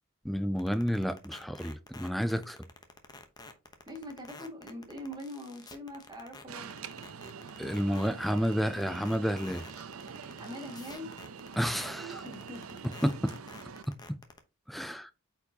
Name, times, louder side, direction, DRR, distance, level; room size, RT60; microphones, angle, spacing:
voice 1, 0.2-2.6 7.6-9.6 11.5-12.2 13.0-13.4 14.7-15.1, equal, ahead, 0.5 m, -30 dB
sound 1, 0.6-14.4, left 3 dB, 20° left, 0.9 m, -49 dB
voice 2, 3.9-6.8 10.4-11.1 12.2-12.7, left 1 dB, 20° right, 2.0 m, -43 dB
Alarm, 6.5-13.8, right 6 dB, 75° right, 0.6 m, -45 dB
8.5 x 4.7 x 2.8 m
head